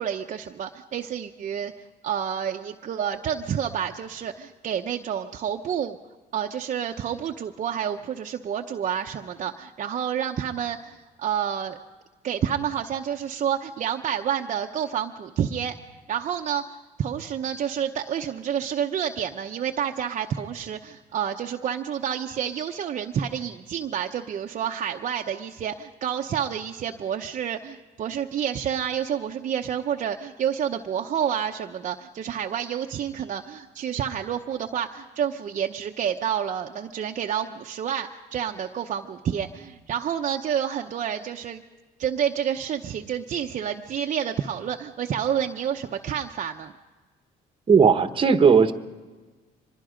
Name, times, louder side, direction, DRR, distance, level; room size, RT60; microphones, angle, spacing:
voice 1, 0.0-1.7 2.0-6.0 6.3-11.8 12.2-15.7 16.1-41.6 42.0-46.7, right 9 dB, 45° right, 2 dB, 0.8 m, -29 dB
voice 2, 47.7-48.7, right 6 dB, 30° right, 9 dB, 1.1 m, -16 dB
24.5 x 21.0 x 5.1 m, 1.3 s
cardioid pair, 110°, 17 cm